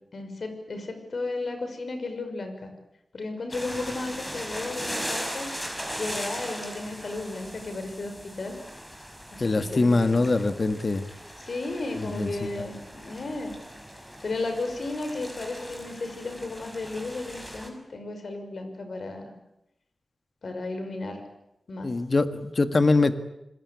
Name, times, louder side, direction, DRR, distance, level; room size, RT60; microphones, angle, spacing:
voice 1, 0.1-2.7 3.1-5.5 5.9-8.6 9.3-10.4 11.4-13.5 14.2-19.3 20.4-21.2 21.7-21.9, left 2 dB, 65° left, 7 dB, 5.8 m, -34 dB
sound 1, 3.5-17.7, equal, 5° left, 6.0 m, -39 dB
voice 2, 9.4-11.0 12.0-12.3 21.8-23.2, left 3 dB, 45° left, 9 dB, 1.8 m, -23 dB
26.5 x 21.5 x 8.5 m, 0.87 s
cardioid pair, 65°, 0 cm